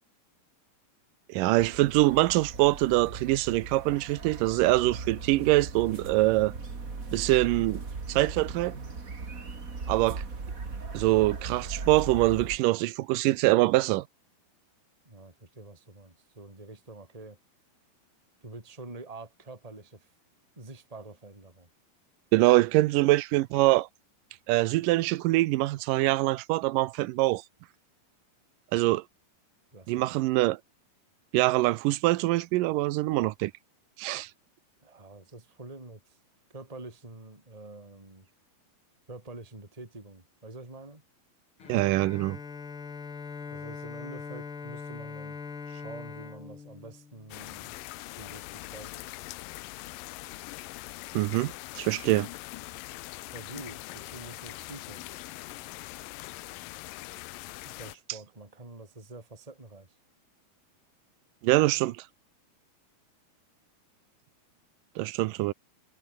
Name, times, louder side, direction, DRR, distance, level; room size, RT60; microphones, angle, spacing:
voice 1, 1.3-6.5 7.1-7.8 8.1-8.8 9.9-10.2 10.9-14.0 22.3-23.9 24.5-27.4 28.7-29.0 29.9-30.6 31.3-33.5 34.0-34.3 41.7-42.4 51.1-52.3 61.4-62.0 65.0-65.5, right 18 dB, 80° right, 2.0 m, -24 dB
sound 1, 1.6-12.6, right 4 dB, 25° right, 2.3 m, -39 dB
voice 2, 15.0-17.4 18.4-20.1 20.6-21.7 29.7-30.0 34.8-36.2 36.5-38.3 39.1-41.0 43.5-45.4 45.7-47.7 48.2-49.1 53.3-55.0 57.6-59.9, right 2 dB, 10° right, 3.6 m, -46 dB
Bowed string instrument, 41.6-47.6, left 5 dB, 35° left, 3.6 m, -42 dB
sound 2, 47.3-58.0, left 19 dB, 85° left, 2.1 m, -42 dB
omnidirectional pair, 4.6 m